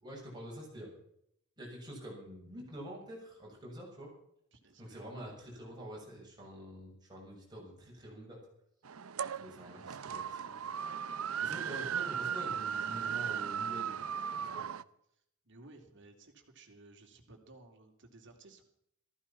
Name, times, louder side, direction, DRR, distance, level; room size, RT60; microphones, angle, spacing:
voice 1, 0.0-0.9 1.6-4.1 4.8-8.4 9.3-10.5 11.4-14.0 14.4-14.6, equal, 20° right, -2 dB, 7.0 m, -47 dB
voice 2, 4.5-5.1 9.7-10.3 15.1-18.6, right 2 dB, 60° right, 4 dB, 3.1 m, -58 dB
sound 1, 8.8-14.8, right 7 dB, 75° right, 0.7 m, -37 dB
15.0 x 14.5 x 5.9 m, 0.72 s
head